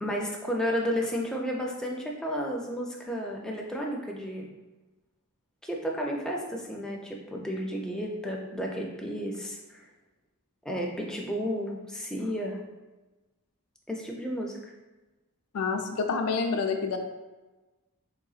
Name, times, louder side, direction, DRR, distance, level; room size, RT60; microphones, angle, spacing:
voice 1, 0.0-4.5 5.6-9.9 10.7-12.6 13.9-14.7, equal, 5° left, -1 dB, 0.4 m, -32 dB
voice 2, 15.5-17.0, left 4 dB, 75° left, 5 dB, 0.4 m, -28 dB
3.8 x 3.4 x 2.4 m, 1.2 s
head